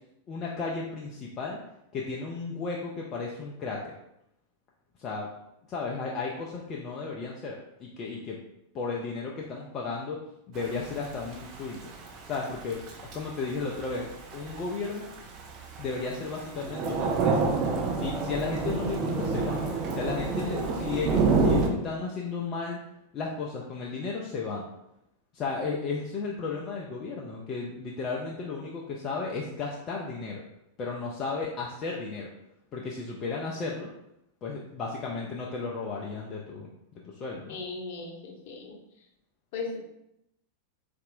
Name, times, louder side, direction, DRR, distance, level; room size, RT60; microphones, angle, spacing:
voice 1, 0.3-1.6 1.9-3.9 5.0-5.3 5.7-8.4 8.7-10.2 10.5-11.9 12.2-12.8 13.1-15.1 15.8-17.5 18.0-19.6 19.9-22.8 23.1-24.7 25.3-30.4 30.8-32.3 32.7-33.9 34.4-36.7 37.2-37.6, left 4 dB, 30° left, -3 dB, 0.4 m, -34 dB
Thunder / Rain, 10.5-21.7, right 4 dB, 40° right, 0.5 m, -29 dB
voice 2, 37.5-38.7 39.5-39.8, left 4 dB, 50° left, -1 dB, 0.8 m, -37 dB
4.0 x 2.5 x 2.5 m, 0.83 s
figure-of-eight pair, 90°, 0 cm